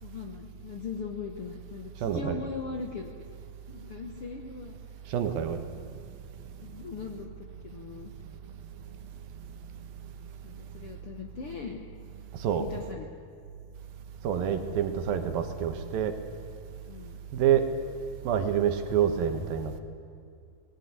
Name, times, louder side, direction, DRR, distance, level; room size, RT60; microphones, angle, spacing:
voice 1, 0.0-3.1 3.7-4.8 6.6-8.1 10.4-11.9 12.6-13.1 16.8-17.2, left 5 dB, 65° left, 4 dB, 1.4 m, -40 dB
voice 2, 2.0-2.4 5.1-5.6 12.4-12.7 14.2-16.2 17.3-17.7 18.2-19.8, right 9 dB, 75° right, 8 dB, 3.0 m, -27 dB
21.0 x 18.5 x 9.7 m, 2.3 s
omnidirectional pair, 4.3 m